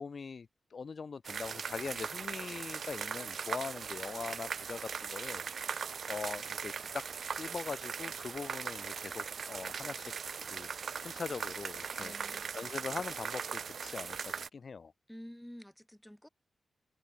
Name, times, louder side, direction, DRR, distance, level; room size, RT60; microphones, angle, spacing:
voice 1, 0.0-7.0 7.3-10.1 10.4-10.7 11.0-14.9, left 5 dB, 50° left, 1.8 m, -42 dB
sound 1, 1.2-14.5, right 6 dB, 65° right, 0.3 m, -39 dB
voice 2, 12.0-12.6 15.1-16.3, equal, 5° left, 4.7 m, -50 dB
wide cardioid pair, 110°, 0 cm